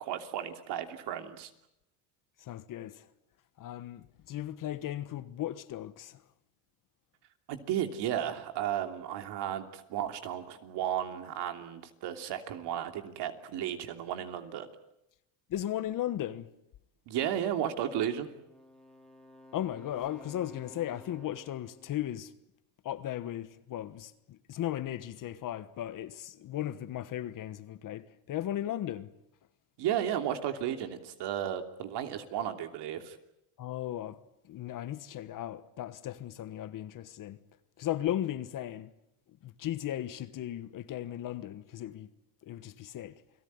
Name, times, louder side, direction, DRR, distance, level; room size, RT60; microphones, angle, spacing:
voice 1, 0.0-1.5 7.5-14.7 17.1-18.3 29.8-33.2, right 10 dB, 60° right, 3.1 m, -34 dB
voice 2, 2.4-3.1 3.6-6.2 15.5-16.5 19.5-22.3 22.8-29.1 33.6-37.4 37.8-38.9 39.3-42.1 42.4-43.2, left 12 dB, 45° left, 1.3 m, -36 dB
Wind instrument woodwind instrument, 18.2-22.1, left 1 dB, ahead, 3.5 m, -54 dB
29.5 x 19.0 x 9.6 m
cardioid pair, 130°, 47 cm